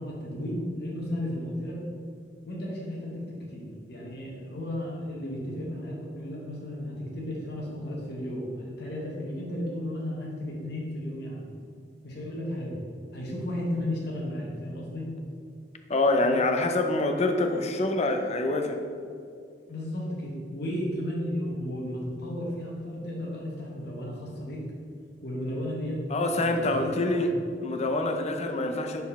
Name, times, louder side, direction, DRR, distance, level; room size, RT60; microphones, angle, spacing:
voice 1, 0.0-1.8 2.5-11.4 12.0-12.8 13.1-15.1 16.2-16.4 19.7-24.6 25.2-27.3, left 1 dB, 65° left, -4 dB, 1.1 m, -34 dB
voice 2, 15.9-18.8 26.1-27.3 27.6-29.0, left 2 dB, 40° left, 5 dB, 0.5 m, -26 dB
4.2 x 4.1 x 5.5 m, 2.3 s
head